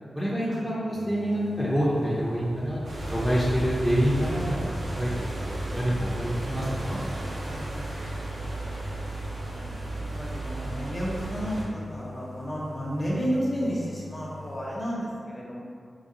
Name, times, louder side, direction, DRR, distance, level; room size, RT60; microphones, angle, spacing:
voice 1, 0.1-2.8 3.1-5.3 5.6-7.0, equal, ahead, -8 dB, 0.6 m, -27 dB
sound 1, 0.9-14.9, left 3 dB, 55° left, 0.4 m, -44 dB
sound 2, 2.1-6.7, left 2 dB, 60° right, 0.3 m, -43 dB
sound 3, 2.8-11.6, right 2 dB, 85° right, 0.7 m, -34 dB
voice 2, 7.3-15.6, equal, 30° left, -6 dB, 0.9 m, -33 dB
4.8 x 2.2 x 2.7 m, 2.2 s
wide cardioid pair, 70°, 0 cm